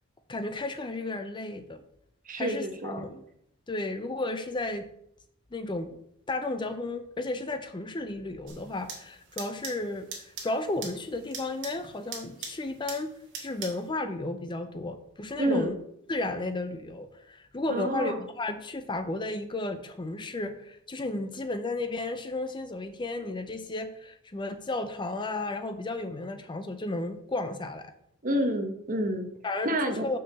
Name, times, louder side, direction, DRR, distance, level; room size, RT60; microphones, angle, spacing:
voice 1, 0.3-1.8 2.4-3.2 3.7-4.8 5.5-6.0 6.3-13.1 13.4-15.7 16.1-27.9 29.4-30.2, left 2 dB, 20° left, 8 dB, 0.5 m, -33 dB
voice 2, 2.3-3.1 15.3-15.8 17.7-18.2 28.2-29.3 29.6-30.1, right 1 dB, 40° right, 6 dB, 1.0 m, -28 dB
sound 1, 8.5-13.9, right 5 dB, 60° right, 2.0 m, -43 dB
6.2 x 4.7 x 6.7 m, 0.73 s
head